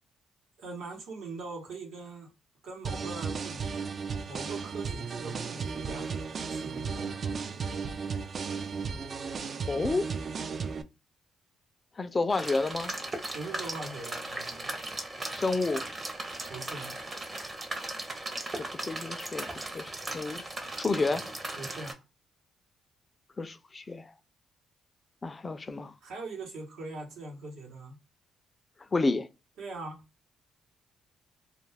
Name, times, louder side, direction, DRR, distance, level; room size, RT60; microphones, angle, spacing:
voice 1, 0.6-2.3 2.6-3.8 4.3-7.6 13.3-14.7 16.5-17.0 21.6-22.0 26.0-28.0 29.6-30.0, right 3 dB, 80° right, 1.0 m, -42 dB
sound 1, 2.8-10.8, right 5 dB, 50° right, 0.3 m, -35 dB
voice 2, 9.7-10.0 12.0-12.9 15.3-15.8 18.7-20.4 20.8-21.2 23.4-24.1 25.2-25.9 28.9-29.3, left 3 dB, 30° left, 0.3 m, -30 dB
sound 2, 12.3-21.9, right 2 dB, 25° right, 0.7 m, -37 dB
2.3 x 2.3 x 3.2 m
cardioid pair, 90°, 0 cm